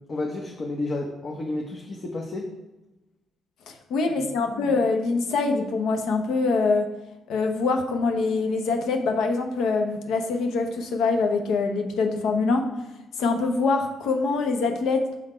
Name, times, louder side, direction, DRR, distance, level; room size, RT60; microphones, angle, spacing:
voice 1, 0.1-2.5 4.1-4.8, left 2 dB, 45° left, 0 dB, 0.8 m, -32 dB
voice 2, 3.7-6.9 7.3-12.7 13.2-15.3, left 4 dB, 80° left, 4 dB, 0.9 m, -24 dB
6.2 x 4.0 x 4.4 m, 1.0 s
cardioid pair, 90°, 0 cm